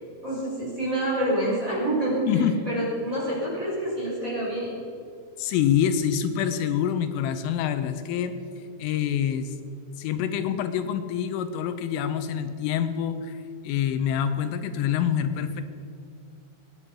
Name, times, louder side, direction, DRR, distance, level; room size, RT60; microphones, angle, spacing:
voice 1, 0.2-4.7, right 1 dB, 15° right, -6 dB, 4.8 m, -27 dB
voice 2, 2.3-2.6 5.4-9.6 10.0-15.6, left 9 dB, 85° left, 9 dB, 3.3 m, -26 dB
22.5 x 10.0 x 5.5 m, 2.5 s
omnidirectional pair, 5.7 m